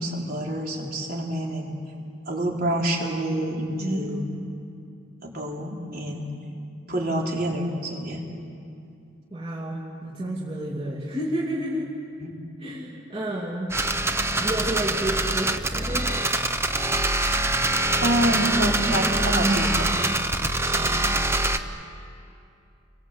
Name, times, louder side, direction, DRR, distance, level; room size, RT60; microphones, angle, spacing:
voice 1, 0.0-1.7 2.3-4.3 5.2-6.3 6.9-8.2 12.2-12.4 18.0-20.3 20.6-21.0, right 1 dB, 50° right, -2 dB, 4.7 m, -27 dB
voice 2, 3.8-4.5 9.3-11.9 12.6-13.7 14.4-16.2, right 1 dB, 30° right, -5 dB, 2.8 m, -30 dB
sound 1, 13.7-21.6, right 2 dB, 15° right, 1.0 m, -24 dB
30.0 x 22.5 x 8.4 m, 2.5 s
head